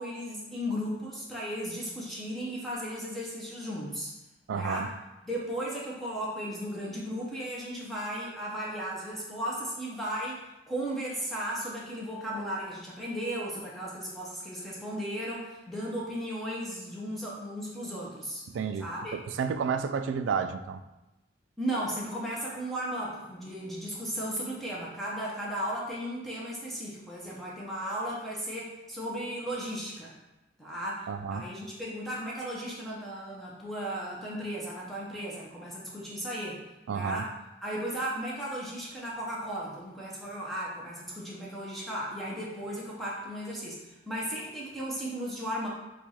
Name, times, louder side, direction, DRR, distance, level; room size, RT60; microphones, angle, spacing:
voice 1, 0.0-4.1 4.5-4.9 5.3-18.4 18.8-19.1 21.6-30.1 30.6-36.6 36.9-37.3 37.6-45.7, equal, ahead, -6 dB, 0.6 m, -35 dB
voice 2, 4.5-4.9 18.5-18.9 19.1-20.8 31.1-31.4 36.9-37.3, right 6 dB, 75° right, 9 dB, 0.3 m, -31 dB
4.5 x 2.3 x 4.1 m, 0.99 s
head